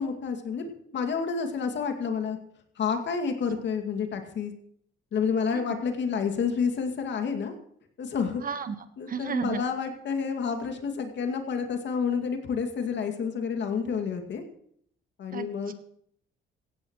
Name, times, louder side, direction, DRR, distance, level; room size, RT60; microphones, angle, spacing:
voice 1, 0.0-2.4 2.8-4.5 5.1-7.5 8.0-8.4 9.0-14.4 15.2-15.7, left 6 dB, 65° left, 5 dB, 2.3 m, -29 dB
voice 2, 8.4-8.7 9.1-9.6 15.3-15.7, right 6 dB, 45° right, 10 dB, 1.3 m, -33 dB
17.0 x 15.5 x 3.1 m, 0.67 s
cardioid pair, 90°, 20 cm